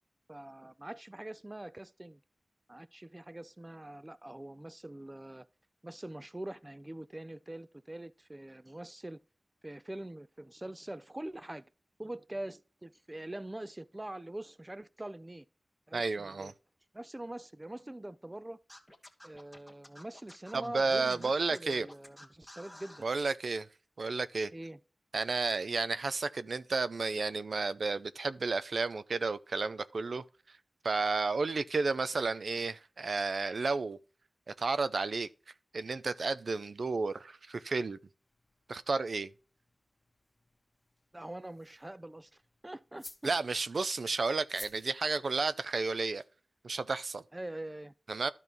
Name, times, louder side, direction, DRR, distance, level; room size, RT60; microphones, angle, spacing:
voice 1, 0.3-2.2 2.7-5.5 5.8-9.2 9.6-11.6 12.0-15.5 15.9-16.5 16.9-18.6 19.2-23.0 24.5-24.8 41.1-43.3 47.3-47.9, right 1 dB, 20° right, 0.5 m, -44 dB
voice 2, 15.9-16.5 20.5-21.9 23.0-23.7 24.0-24.5 25.1-30.2 30.8-34.0 34.5-35.3 35.7-38.0 38.7-39.3 43.2-46.2 46.6-47.2 48.1-48.3, right 4 dB, 75° right, 0.4 m, -32 dB
Scratching (performance technique), 18.7-23.1, left 1 dB, 5° left, 1.4 m, -52 dB
sound 1, 38.2-46.0, left 2 dB, 25° left, 1.5 m, -56 dB
12.0 x 5.3 x 3.0 m
wide cardioid pair, 75°, 0 cm